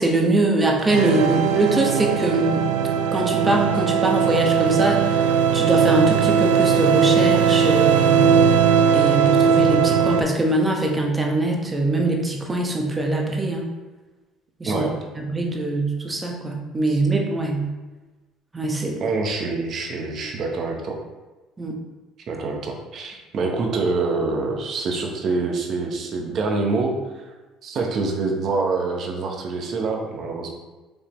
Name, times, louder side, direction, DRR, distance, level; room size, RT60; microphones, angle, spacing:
voice 1, 0.0-2.6 3.1-8.2 8.9-13.7 14.6-14.9 15.2-17.7 18.5-19.0 21.6-21.8, right 2 dB, 20° right, 1 dB, 1.0 m, -22 dB
sound 1, 0.9-10.2, right 7 dB, 85° right, 0.4 m, -19 dB
voice 2, 14.6-14.9 16.9-17.0 19.0-21.0 22.3-27.3 27.6-30.5, right 3 dB, 55° right, 2 dB, 0.9 m, -26 dB
5.3 x 3.3 x 3.0 m, 1.2 s
supercardioid pair, 75°, 0 cm